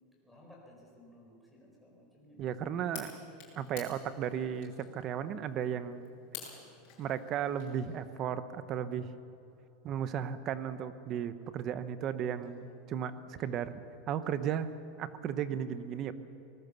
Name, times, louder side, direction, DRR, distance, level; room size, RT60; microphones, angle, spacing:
voice 1, 0.2-2.8 3.3-3.4 12.4-12.7 13.3-13.8, left 1 dB, ahead, -2 dB, 4.7 m, -58 dB
voice 2, 2.4-3.1 3.6-6.1 7.0-9.1 9.8-13.7 14.1-14.7 15.0-16.1, right 9 dB, 30° right, 12 dB, 0.9 m, -35 dB
sound 1, 2.9-8.0, left 9 dB, 40° left, 6.9 m, -50 dB
24.5 x 19.5 x 6.9 m, 2.9 s
supercardioid pair, 175°, 0 cm